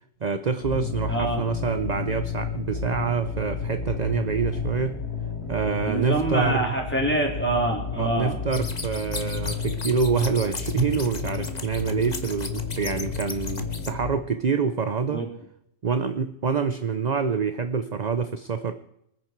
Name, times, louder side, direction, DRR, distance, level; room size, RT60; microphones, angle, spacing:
voice 1, 0.2-5.0 5.5-6.6 7.9-15.2 15.8-18.7, right 5 dB, 40° right, 10 dB, 0.9 m, -26 dB
sound 1, 0.6-14.2, left 5 dB, 70° left, 3.3 m, -32 dB
voice 2, 1.1-1.4 5.9-8.4 15.1-15.3, right 1 dB, 10° left, -1 dB, 4.0 m, -25 dB
sound 2, 8.5-13.9, left 3 dB, 40° left, 1.5 m, -37 dB
25.5 x 9.8 x 4.6 m, 0.77 s
omnidirectional pair, 1.1 m